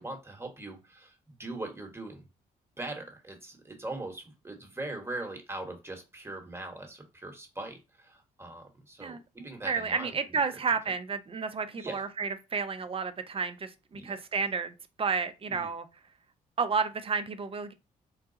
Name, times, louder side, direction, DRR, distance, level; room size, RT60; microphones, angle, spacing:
voice 1, 0.0-2.3 2.8-10.6 11.7-12.0 13.9-14.2 15.5-15.7, right 2 dB, 15° right, 1.2 m, -41 dB
voice 2, 9.0-15.9 16.6-17.7, right 5 dB, 30° right, 0.5 m, -31 dB
3.9 x 2.2 x 2.7 m
hypercardioid pair, 50°, 17 cm